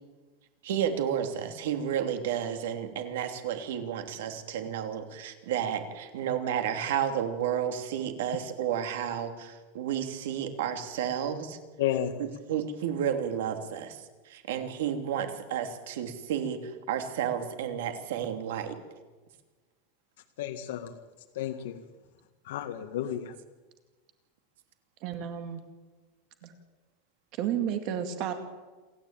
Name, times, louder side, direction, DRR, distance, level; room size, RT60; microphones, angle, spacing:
voice 1, 0.6-11.6 12.5-18.7 26.4-26.5, right 9 dB, 75° right, 6 dB, 3.1 m, -31 dB
voice 2, 11.8-12.2 20.4-20.9 21.3-21.8 22.4-23.3, left 10 dB, 70° left, 5 dB, 1.7 m, -32 dB
voice 3, 25.0-25.6 27.4-28.3, right 9 dB, 40° right, 7 dB, 2.1 m, -31 dB
28.0 x 14.0 x 9.1 m, 1.3 s
supercardioid pair, 175°, 0 cm